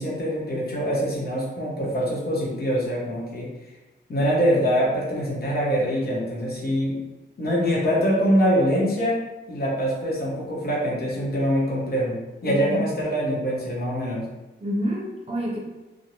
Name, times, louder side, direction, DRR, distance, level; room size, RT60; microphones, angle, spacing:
voice 1, 0.0-3.5 4.1-7.0 7.4-9.2 9.5-14.3, equal, 55° left, -5 dB, 0.9 m, -24 dB
voice 2, 12.4-12.9 14.6-15.6, equal, 30° right, -3 dB, 0.7 m, -28 dB
2.5 x 2.0 x 2.9 m, 1.0 s
wide cardioid pair, 140°, 19 cm